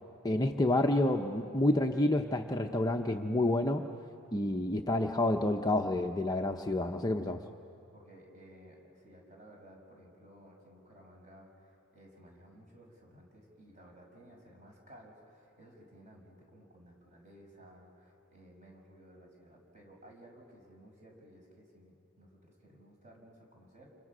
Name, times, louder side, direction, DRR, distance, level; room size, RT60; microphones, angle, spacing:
voice 1, 0.2-3.8 4.3-7.4, left 1 dB, 15° left, 3 dB, 0.7 m, -29 dB
voice 2, 7.9-24.0, equal, 35° right, 0 dB, 6.0 m, -56 dB
29.0 x 28.0 x 6.1 m, 2.9 s
head